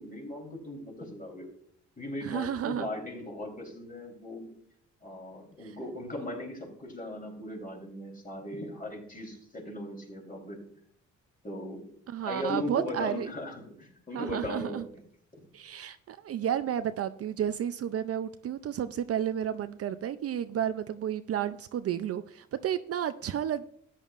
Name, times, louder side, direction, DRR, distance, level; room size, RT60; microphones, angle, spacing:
voice 1, 0.0-1.5 2.0-4.5 5.0-10.6 11.4-11.9 12.2-14.9, left 1 dB, 30° left, 0 dB, 3.8 m, -38 dB
voice 2, 2.2-2.9 5.6-5.8 12.1-13.3 14.1-14.9 15.5-23.7, right 9 dB, 50° right, 11 dB, 0.5 m, -32 dB
13.5 x 9.1 x 2.5 m, 0.65 s
cardioid pair, 90°, 30 cm